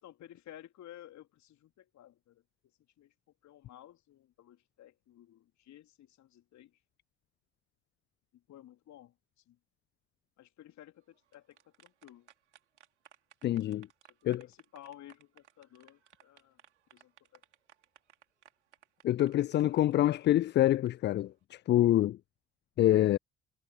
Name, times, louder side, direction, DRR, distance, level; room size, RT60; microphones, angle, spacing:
voice 1, 0.0-2.4 3.0-3.1 3.4-6.8 8.3-9.1 9.5-9.6 10.4-12.3 14.4-16.6 16.9-17.4, left 12 dB, 55° left, 3.2 m, -54 dB
sound 1, 11.1-20.9, right 10 dB, 80° right, 3.4 m, -61 dB
voice 2, 13.4-13.9 14.2-14.5 19.0-22.2 22.8-23.2, left 13 dB, 30° left, 0.4 m, -26 dB
figure-of-eight pair, 45°, 35 cm